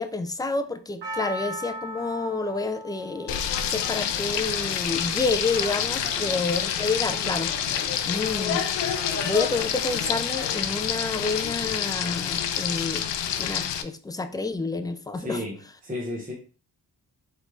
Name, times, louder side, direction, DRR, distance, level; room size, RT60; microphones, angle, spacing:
voice 1, 0.0-7.5 8.1-8.7 9.2-13.0 13.4-15.4, left 3 dB, 10° left, 8 dB, 0.3 m, -29 dB
Percussion, 1.0-5.4 6.0-6.1, right 1 dB, 75° right, 1.2 m, -38 dB
Frying (food), 3.3-13.8, left 9 dB, 90° left, 0.5 m, -28 dB
sound 1, 3.9-11.4, equal, 40° right, 2.1 m, -43 dB
voice 2, 15.2-15.6 15.8-16.3, left 1 dB, 20° right, -3 dB, 1.1 m, -33 dB
4.1 x 3.4 x 3.0 m, 0.38 s
wide cardioid pair, 100°, 42 cm